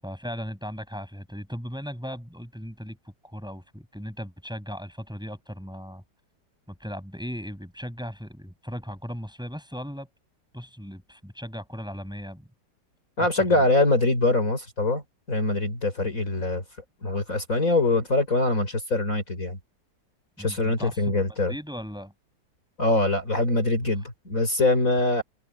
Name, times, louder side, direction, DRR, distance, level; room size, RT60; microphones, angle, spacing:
voice 1, 0.0-3.0 3.2-6.0 6.7-10.1 10.5-12.5 13.4-13.7 20.4-22.1, equal, ahead, 7.2 m, -37 dB
voice 2, 13.2-15.0 15.3-16.6 17.0-19.6 20.4-21.5 22.8-25.2, left 2 dB, 45° left, 4.8 m, -23 dB
omnidirectional pair, 2.0 m